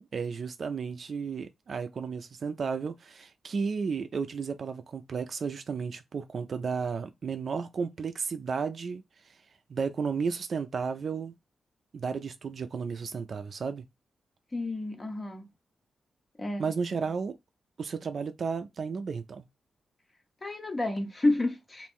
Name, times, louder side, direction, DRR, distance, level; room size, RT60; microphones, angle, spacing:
voice 1, 0.1-9.0 9.7-11.3 11.9-13.8 16.6-17.4 17.8-19.5, right 5 dB, 50° right, 0.4 m, -33 dB
voice 2, 14.5-15.5 16.4-16.7 20.4-21.9, left 2 dB, 20° left, 0.6 m, -30 dB
3.0 x 2.5 x 3.6 m
wide cardioid pair, 160°, 0 cm